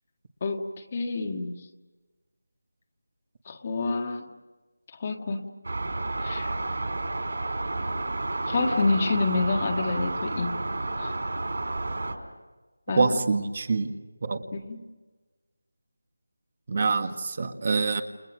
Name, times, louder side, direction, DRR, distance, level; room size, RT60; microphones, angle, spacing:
voice 1, 0.4-1.6 3.5-4.2 5.0-5.4 6.2-6.5 8.5-10.5 11.0-11.1 12.9-13.2 14.5-14.8, left 3 dB, 20° left, 4 dB, 1.6 m, -28 dB
sound 1, 5.6-12.1, right 2 dB, 55° right, 4.8 m, -31 dB
voice 2, 13.0-13.9 14.2-14.4 16.7-18.0, right 4 dB, 30° right, 8 dB, 1.6 m, -25 dB
29.5 x 29.0 x 6.4 m, 1.2 s
figure-of-eight pair, 180°, 0 cm